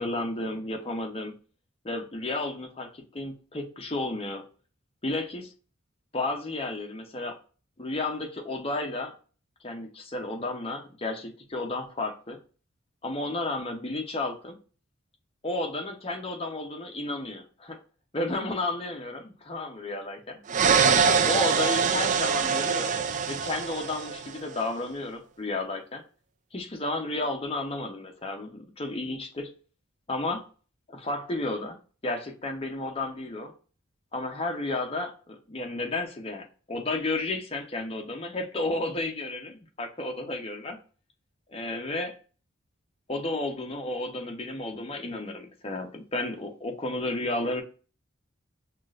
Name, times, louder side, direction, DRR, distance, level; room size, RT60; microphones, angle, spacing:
voice 1, 0.0-1.3 1.8-4.4 5.0-5.5 6.1-7.4 7.8-9.1 9.6-12.4 13.0-14.6 15.4-17.8 18.1-20.4 21.0-23.0 23.3-26.0 26.5-29.5 30.1-30.4 30.9-31.8 32.0-33.5 34.1-40.8 41.5-42.1 43.1-47.6, left 2 dB, 30° left, 3 dB, 0.7 m, -32 dB
sound 1, 20.5-24.4, right 6 dB, 40° right, 0.3 m, -24 dB
5.9 x 2.4 x 2.4 m, 0.38 s
head